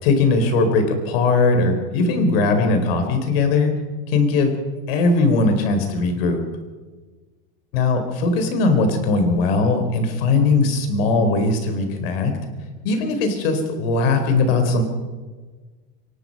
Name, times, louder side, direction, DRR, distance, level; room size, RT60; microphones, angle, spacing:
voice 1, 0.0-3.7 4.1-4.5 4.9-6.4 7.7-12.3 12.8-14.8, left 3 dB, 80° left, 6 dB, 4.6 m, -19 dB
23.5 x 19.5 x 5.7 m, 1.3 s
supercardioid pair, 150°, 29 cm